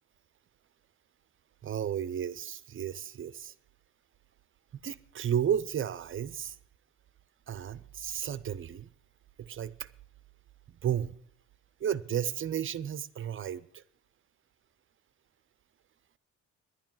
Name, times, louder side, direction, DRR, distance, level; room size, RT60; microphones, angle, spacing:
voice 1, 1.6-3.5 4.8-6.6 7.5-8.9 9.4-9.9 10.8-11.1 11.8-13.8, right 9 dB, 45° right, 0.6 m, -33 dB
11.0 x 9.5 x 7.5 m
cardioid pair, 90°, 30 cm